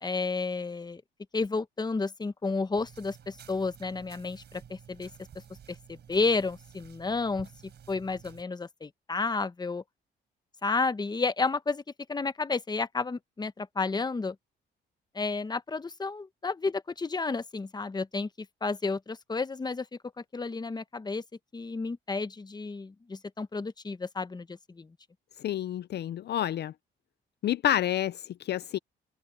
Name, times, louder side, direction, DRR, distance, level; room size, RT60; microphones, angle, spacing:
voice 1, 0.0-1.0 1.3-5.1 5.9-7.5 7.9-9.8 10.6-11.8 12.1-14.3 15.1-19.9 20.3-21.2 21.5-24.9, left 3 dB, 20° left, 1.0 m, -31 dB
sound 1, 2.7-8.4, right 8 dB, 60° right, 4.0 m, -52 dB
voice 2, 25.4-26.7 27.4-28.8, left 11 dB, 55° left, 0.5 m, -29 dB
cardioid pair, 90°, 20 cm